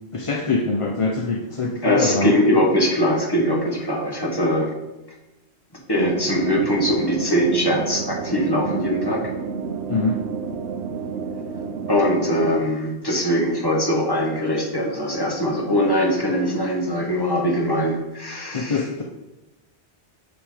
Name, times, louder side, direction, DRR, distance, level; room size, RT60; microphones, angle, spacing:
voice 1, 0.1-2.3 9.9-10.2 18.5-19.0, left 3 dB, 40° left, 1 dB, 0.5 m, -23 dB
voice 2, 1.8-4.7 5.9-9.3 11.9-18.9, equal, 20° left, -1 dB, 1.4 m, -21 dB
sound 1, 5.9-12.6, right 6 dB, 80° right, 0.9 m, -30 dB
6.2 x 6.1 x 4.9 m, 1.0 s
omnidirectional pair, 1.1 m